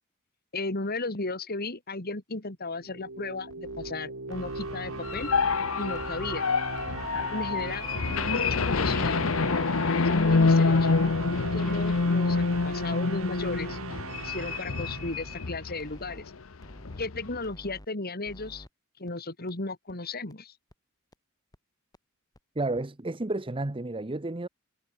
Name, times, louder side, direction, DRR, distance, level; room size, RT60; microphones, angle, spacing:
voice 1, 0.5-5.3 5.8-6.4 7.3-7.9 8.2-11.0 11.5-13.8 14.2-16.3 17.0-18.6 19.0-20.5, left 3 dB, 50° left, 3.0 m, -35 dB
sound 1, 2.7-15.8, right 3 dB, 80° right, 2.5 m, -39 dB
sound 2, 3.5-3.9 4.3-4.7 5.1-5.5 5.9-6.4 6.8-7.2 7.6-8.0 8.4-8.8 9.2-9.7 10.1-10.5 10.9-11.3 11.7-12.1 12.5-12.9 13.3-13.8 14.2-14.6 15.0-15.4 15.8-16.2 16.6-17.0 17.4-17.9 18.2-18.7 19.1-19.2 19.5-19.6 19.9-20.0 20.3-20.4 20.7-20.8 21.1-21.2 21.5-21.6 21.9-22.0 22.3-22.4 22.7-22.8, equal, 20° left, 3.3 m, -48 dB
sound 3, 4.8-15.8 16.1-16.3 16.6-17.4, left 4 dB, 70° left, 0.8 m, -26 dB
voice 2, 22.5-24.5, right 2 dB, 25° right, 0.9 m, -31 dB
head